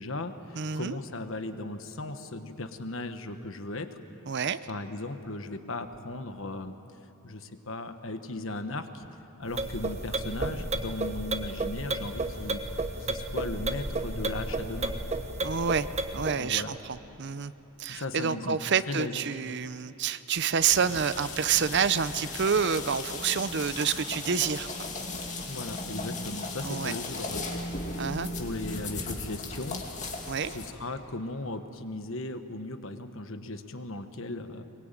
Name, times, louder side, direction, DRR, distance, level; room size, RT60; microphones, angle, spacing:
voice 1, 0.0-3.9 4.7-6.7 7.2-9.1 9.4-12.6 13.0-14.9 16.3-16.7 17.9-18.6 18.9-19.2 25.4-27.5 28.4-29.8 30.4-34.7, left 2 dB, 65° left, 8 dB, 1.3 m, -37 dB
voice 2, 0.6-1.0 4.3-4.6 15.4-15.9 16.1-17.5 17.8-24.9 26.6-26.9 28.0-28.3 30.3-30.6, right 7 dB, 55° right, 14 dB, 0.7 m, -28 dB
sound 1, 9.5-16.4, right 2 dB, 30° right, 1.1 m, -32 dB
sound 2, 20.7-30.7, left 2 dB, 35° left, 2.4 m, -37 dB
23.0 x 22.5 x 9.1 m, 2.9 s
head